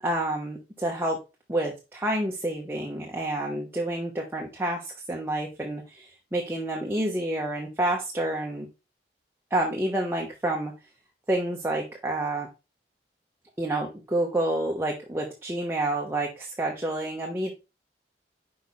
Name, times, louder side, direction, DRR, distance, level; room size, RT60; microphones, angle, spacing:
voice 1, 0.0-1.2 1.5-8.7 9.5-10.7 11.3-12.5 13.6-17.5, right 1 dB, 15° right, -1 dB, 0.9 m, -29 dB
5.5 x 4.8 x 4.0 m, 0.27 s
head